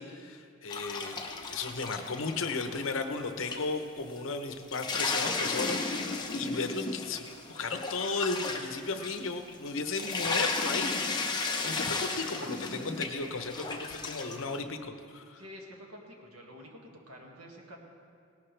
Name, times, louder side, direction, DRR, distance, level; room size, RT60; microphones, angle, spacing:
voice 1, 0.0-5.8 6.3-11.3 11.6-15.4, left 4 dB, 60° left, 7 dB, 0.8 m, -35 dB
sound 1, 0.7-3.2 3.5-3.6 4.2-4.3 4.5-14.5, left 3 dB, 20° left, 0.9 m, -34 dB
voice 2, 15.3-16.8 17.1-17.8, equal, 75° right, 0 dB, 1.9 m, -48 dB
17.5 x 12.0 x 3.3 m, 2.4 s
head